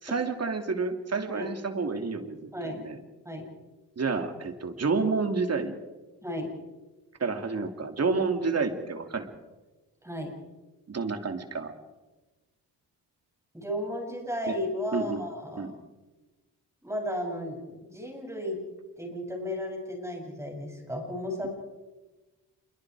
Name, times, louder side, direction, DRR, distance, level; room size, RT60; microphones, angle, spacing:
voice 1, 0.0-3.0 4.0-5.8 7.2-9.3 10.9-11.7 14.5-14.6 14.9-15.2 15.6-15.7, right 4 dB, 40° right, 6 dB, 2.9 m, -29 dB
voice 2, 13.5-15.7 16.8-18.6 19.0-21.5, left 1 dB, 5° right, 1 dB, 7.8 m, -34 dB
28.0 x 23.5 x 4.9 m, 1.2 s
cardioid pair, 95°, 39 cm